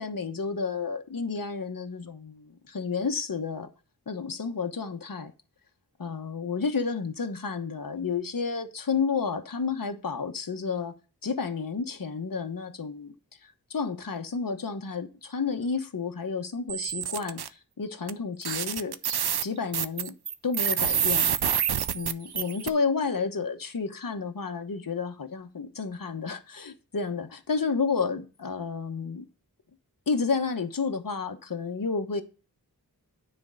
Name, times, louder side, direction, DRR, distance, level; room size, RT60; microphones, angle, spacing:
voice 1, 0.0-3.7 4.1-5.3 6.0-10.9 11.2-13.1 13.4-18.9 19.4-20.1 20.4-21.3 21.9-29.2 30.1-32.2, left 5 dB, 60° left, 1.1 m, -31 dB
sound 1, 16.7-17.5 18.1-18.2 18.4-22.7, right 8 dB, 75° right, 0.6 m, -27 dB
9.7 x 4.5 x 6.3 m
wide cardioid pair, 65°, 39 cm